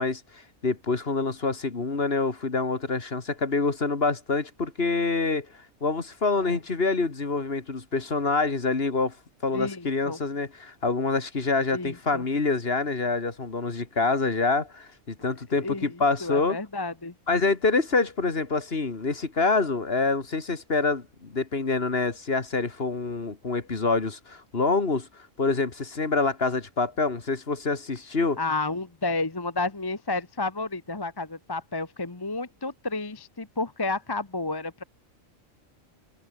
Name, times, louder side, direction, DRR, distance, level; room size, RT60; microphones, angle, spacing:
voice 1, 0.0-5.5 5.8-9.2 9.4-16.6 17.3-28.4, left 3 dB, 45° left, 2.3 m, -26 dB
voice 2, 9.5-10.2 11.7-12.2 15.6-15.9 16.2-17.1 28.4-34.8, left 3 dB, 20° left, 1.1 m, -31 dB
omnidirectional pair, 1.4 m